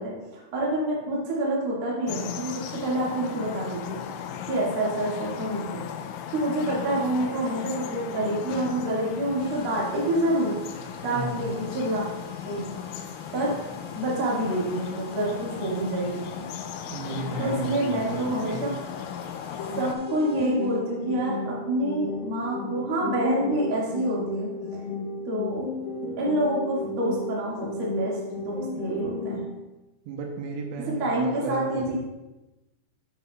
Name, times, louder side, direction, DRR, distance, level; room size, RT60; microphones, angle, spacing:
voice 1, 0.0-4.0 4.5-5.8 6.3-10.5 11.0-12.0 12.4-12.6 13.3-13.6 13.9-16.4 17.4-18.7 19.8-24.5 25.3-25.6 26.2-29.4 30.8-31.9, right 1 dB, 45° right, -5 dB, 1.7 m, -27 dB
sound 1, 2.1-20.0, left 9 dB, 90° left, 3.1 m, -37 dB
sound 2, 9.4-20.8, left 2 dB, 35° left, 1.8 m, -49 dB
voice 2, 11.0-11.6 16.9-18.8 30.1-32.0, right 2 dB, 80° right, 1 dB, 3.1 m, -34 dB
sound 3, 19.6-29.6, left 2 dB, 65° left, 2.5 m, -34 dB
9.5 x 7.9 x 2.4 m, 1.0 s
omnidirectional pair, 5.6 m